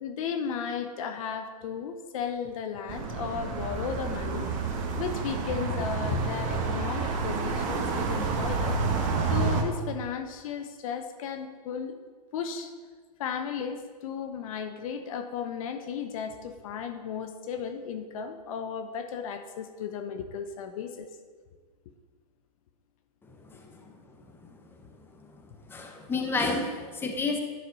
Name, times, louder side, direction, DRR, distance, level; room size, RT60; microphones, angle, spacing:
voice 1, 0.0-4.5 5.0-8.8 9.3-12.0 12.3-12.7 13.2-21.1, left 7 dB, 60° left, 7 dB, 0.7 m, -35 dB
sound 1, 2.9-9.6, right 4 dB, 40° right, 1.2 m, -29 dB
voice 2, 23.5-23.9 25.3-25.4 25.7-27.4, left 3 dB, 10° left, 3 dB, 0.9 m, -30 dB
10.0 x 6.0 x 4.0 m, 1.5 s
hypercardioid pair, 120°, 20 cm